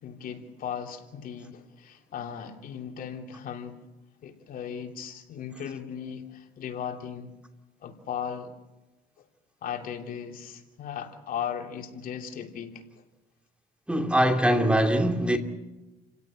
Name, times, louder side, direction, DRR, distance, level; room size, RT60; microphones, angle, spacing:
voice 1, 0.0-3.8 4.2-7.3 7.8-8.5 9.2-9.3 9.6-12.8, left 8 dB, 60° left, 3.1 m, -37 dB
voice 2, 13.9-15.4, right 1 dB, 5° right, 2.6 m, -22 dB
29.5 x 17.0 x 8.9 m
cardioid pair, 110°, 17 cm